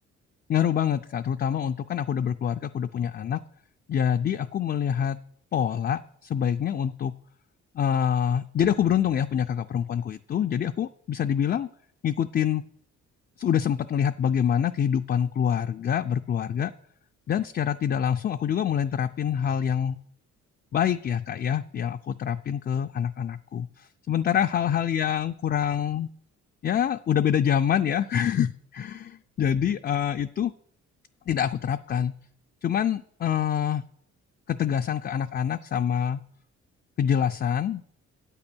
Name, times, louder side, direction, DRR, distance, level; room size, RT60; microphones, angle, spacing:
voice 1, 0.5-3.4 3.9-5.2 5.5-7.1 7.7-11.7 12.0-12.6 13.4-16.7 17.3-20.0 20.7-26.1 26.6-30.5 31.3-32.1 32.6-33.8 34.5-36.2 37.0-37.8, left 9 dB, 35° left, 7 dB, 0.4 m, -26 dB
8.8 x 8.0 x 6.2 m, 0.66 s
cardioid pair, 90°, 30 cm